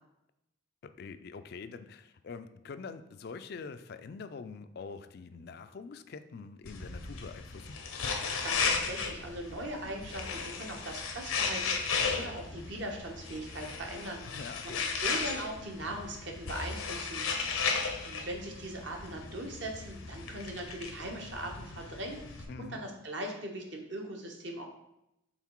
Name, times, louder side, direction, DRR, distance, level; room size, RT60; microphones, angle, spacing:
voice 1, 0.8-7.8 14.2-14.8 22.5-22.8, left 4 dB, 50° left, 10 dB, 0.3 m, -45 dB
sound 1, 6.7-22.5, left 5 dB, 90° left, 0.9 m, -35 dB
voice 2, 8.3-14.4 14.6-17.2 17.5-17.8 18.0-24.7, right 1 dB, 60° right, 2 dB, 1.0 m, -40 dB
5.8 x 3.9 x 4.5 m, 0.86 s
head